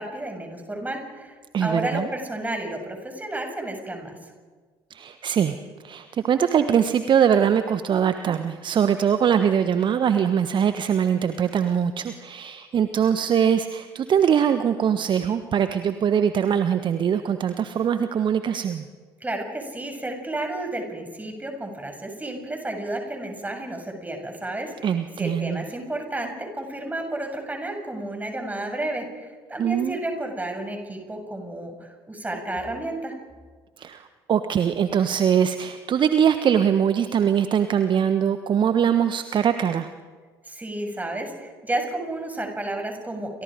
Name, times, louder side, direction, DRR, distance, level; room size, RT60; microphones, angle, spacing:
voice 1, 0.0-4.1 19.2-33.1 40.4-43.4, right 1 dB, 10° right, 3 dB, 7.3 m, -31 dB
voice 2, 1.5-2.1 4.9-5.6 5.8-18.9 24.8-25.6 29.6-30.0 33.8-39.9, right 8 dB, 40° right, 10 dB, 1.3 m, -22 dB
29.5 x 26.0 x 5.2 m, 1.4 s
figure-of-eight pair, 60°, 13 cm